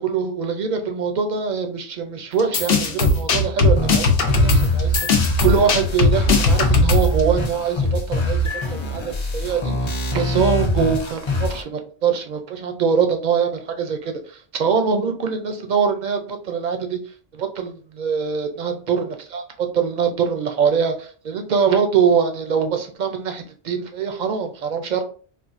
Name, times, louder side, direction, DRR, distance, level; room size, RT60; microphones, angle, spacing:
voice 1, 0.0-4.1 4.4-14.2 14.5-17.0 17.3-25.0, right 6 dB, 55° right, 6 dB, 0.5 m, -23 dB
sound 1, 2.4-7.2, left 3 dB, 60° left, 0.8 m, -18 dB
sound 2, 3.6-11.6, equal, 40° left, 0.4 m, -23 dB
4.0 x 2.4 x 2.4 m, 0.42 s
omnidirectional pair, 1.1 m